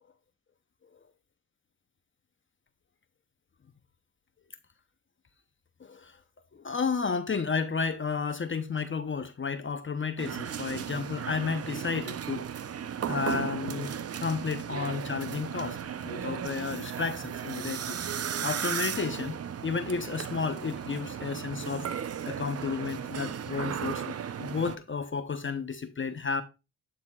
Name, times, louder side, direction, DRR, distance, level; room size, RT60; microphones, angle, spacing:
voice 1, 5.8-6.2 6.5-12.5 13.1-15.8 16.0-21.9 22.3-26.4, left 5 dB, 30° left, 0.7 m, -32 dB
sound 1, 10.2-24.8, right 8 dB, 40° right, 0.6 m, -35 dB
12.0 x 4.1 x 2.3 m
supercardioid pair, 55°, 40 cm